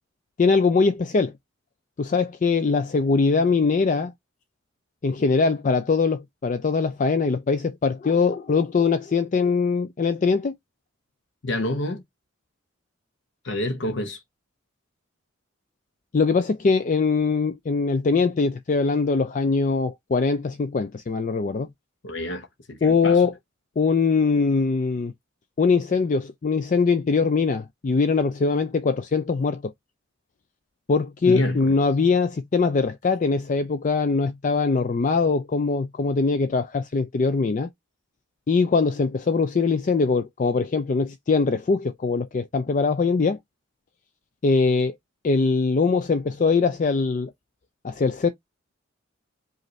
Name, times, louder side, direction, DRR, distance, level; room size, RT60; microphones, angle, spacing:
voice 1, 0.4-1.3 2.0-4.1 5.0-10.5 16.1-21.7 22.8-23.3 23.8-25.1 25.6-29.7 30.9-37.7 38.5-43.4 44.4-44.9 45.2-47.3 47.8-48.3, left 4 dB, 40° left, 0.4 m, -22 dB
voice 2, 11.4-12.0 13.4-14.2 22.0-23.2 31.2-31.7, left 1 dB, 60° left, 0.8 m, -27 dB
5.1 x 2.5 x 3.1 m
head